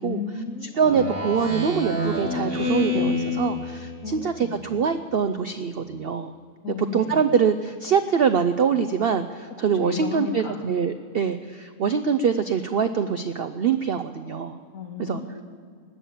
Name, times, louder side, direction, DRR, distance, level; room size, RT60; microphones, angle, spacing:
voice 1, 0.0-1.2 4.0-4.6 6.6-7.3 9.6-10.6 14.7-15.4, left 5 dB, 60° left, 2 dB, 2.1 m, -34 dB
Speech synthesizer, 0.8-4.4, left 2 dB, 35° right, 2.4 m, -27 dB
voice 2, 0.8-6.3 6.9-14.6 15.0-15.2, right 6 dB, 70° right, 10 dB, 0.5 m, -24 dB
19.5 x 8.5 x 7.3 m, 2.1 s
omnidirectional pair, 1.6 m